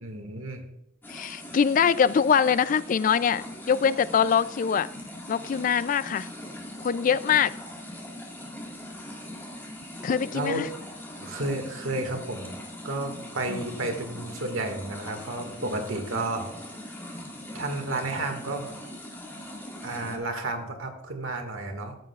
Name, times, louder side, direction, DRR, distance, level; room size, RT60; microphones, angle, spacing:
voice 1, 0.0-0.6 10.3-10.7 11.2-12.6 12.8-16.5 16.8-17.1 17.5-18.7 19.8-22.0, right 2 dB, 85° right, 4 dB, 1.8 m, -32 dB
sound 1, 1.0-20.2, left 1 dB, 10° left, 1.7 m, -41 dB
voice 2, 1.1-4.9 5.3-6.3 6.8-7.5 10.0-10.7 13.5-13.6, left 7 dB, 40° left, 17 dB, 0.3 m, -23 dB
14.0 x 7.7 x 2.4 m, 0.84 s
head